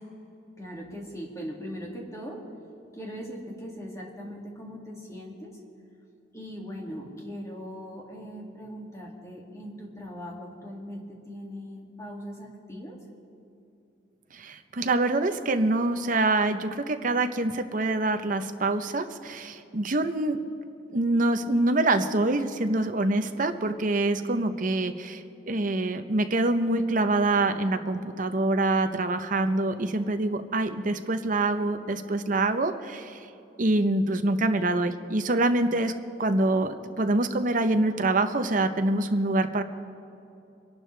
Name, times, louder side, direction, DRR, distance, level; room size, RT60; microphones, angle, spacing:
voice 1, 0.6-2.4 2.9-5.5 6.3-13.0, equal, 15° left, -2 dB, 2.2 m, -40 dB
voice 2, 14.3-20.4 20.9-33.2 33.6-35.9 36.2-39.6, right 2 dB, 50° right, 8 dB, 0.8 m, -25 dB
25.5 x 11.5 x 3.3 m, 2.8 s
head